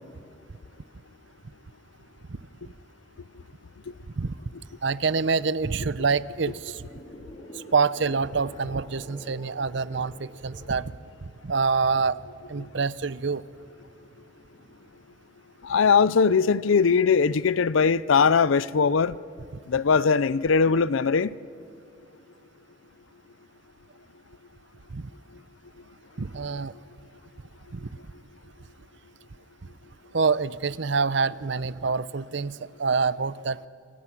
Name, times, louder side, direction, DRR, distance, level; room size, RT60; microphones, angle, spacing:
voice 1, 2.3-2.7 4.2-4.4 4.8-6.8 7.5-10.9 11.4-12.2 12.5-13.4 24.9-25.1 26.2-26.7 27.7-27.9 30.1-33.7, right 4 dB, 60° right, 0.6 m, -26 dB
sound 1, 6.4-15.0, equal, 35° left, 2.4 m, -48 dB
voice 2, 15.6-19.2 19.7-21.4, left 5 dB, 75° left, 0.5 m, -20 dB
28.0 x 27.0 x 6.1 m
head